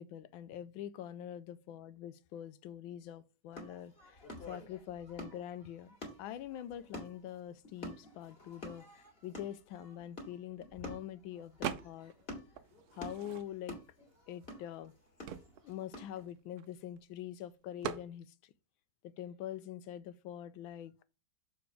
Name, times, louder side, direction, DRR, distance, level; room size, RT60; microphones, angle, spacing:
voice 1, 0.0-5.9 6.2-12.1 12.9-13.8 14.3-14.9 15.6-18.5 19.0-21.0, left 11 dB, 80° left, 1.3 m, -45 dB
sound 1, 3.5-16.2, left 1 dB, 30° left, 2.1 m, -49 dB
sound 2, 11.6-12.2 12.6-13.8 14.4-14.5 14.7-17.0 17.8-18.1, right 9 dB, 65° right, 1.0 m, -42 dB
6.7 x 4.0 x 4.7 m
omnidirectional pair, 2.2 m